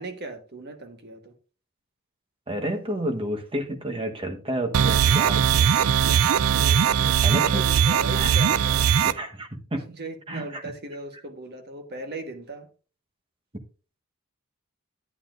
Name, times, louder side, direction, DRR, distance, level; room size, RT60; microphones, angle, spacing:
voice 1, 0.0-1.3 6.5-8.8 9.9-12.7, right 2 dB, 50° right, 1.4 m, -38 dB
voice 2, 2.5-5.4 7.2-7.6 8.1-8.6 9.0-9.9 10.3-10.6, right 1 dB, 25° right, 1.2 m, -30 dB
sound 1, 4.7-9.1, right 8 dB, 75° right, 0.4 m, -20 dB
11.5 x 9.8 x 2.5 m
head